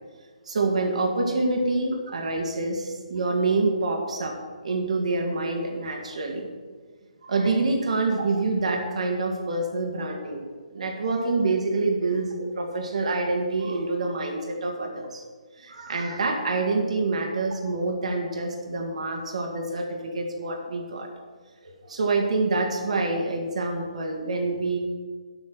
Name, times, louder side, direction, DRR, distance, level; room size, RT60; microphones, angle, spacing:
voice 1, 0.5-6.5 7.2-10.4 10.7-15.2 15.6-21.1 21.6-24.8, right 3 dB, 65° right, 2 dB, 2.2 m, -26 dB
9.6 x 8.3 x 6.3 m, 1.5 s
hypercardioid pair, 145°, 4 cm